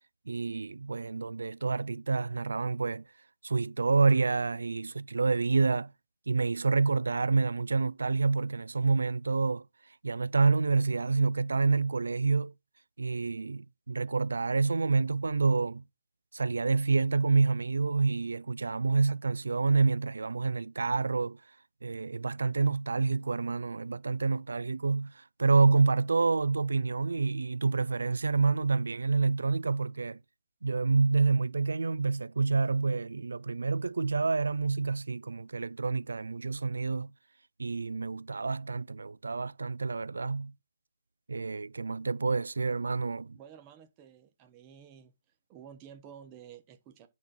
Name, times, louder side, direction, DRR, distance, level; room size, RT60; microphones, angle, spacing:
voice 1, 0.3-3.0 3.4-5.9 6.3-9.6 10.0-12.5 13.0-15.8 16.3-21.4 21.8-25.1 25.4-30.2 30.6-37.1 37.6-40.5 41.3-43.4, right 4 dB, 85° right, 0.4 m, -28 dB
voice 2, 43.3-45.1 45.5-47.1, right 8 dB, 15° right, 1.0 m, -51 dB
10.5 x 3.9 x 6.1 m
hypercardioid pair, 165°, 0 cm